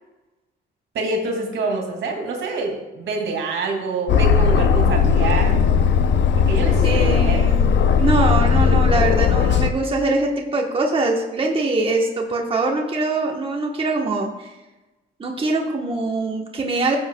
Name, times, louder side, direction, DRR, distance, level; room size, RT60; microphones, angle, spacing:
voice 1, 0.9-5.5 6.4-7.4, right 3 dB, 70° right, 1 dB, 2.3 m, -26 dB
Aircraft, 4.1-9.7, left 6 dB, 65° left, 0.6 m, -17 dB
voice 2, 6.8-14.5 15.2-17.0, right 2 dB, 25° right, 0 dB, 1.2 m, -23 dB
15.0 x 7.7 x 2.3 m, 1.1 s
cardioid pair, 90°, 20 cm